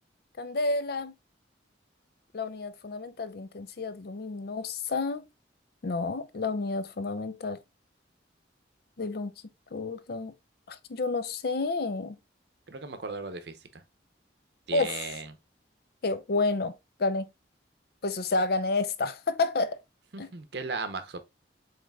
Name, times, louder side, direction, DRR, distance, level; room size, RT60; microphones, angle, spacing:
voice 1, 0.4-1.1 2.3-5.2 5.8-7.6 9.0-9.3 9.7-10.3 10.7-12.2 14.7-15.1 16.0-16.7 17.0-17.3 18.0-19.8 20.2-20.3, left 3 dB, 55° left, 0.5 m, -30 dB
voice 2, 12.7-13.8 14.7-15.3 20.3-21.2, right 4 dB, 60° right, 0.7 m, -36 dB
7.3 x 3.2 x 2.3 m
head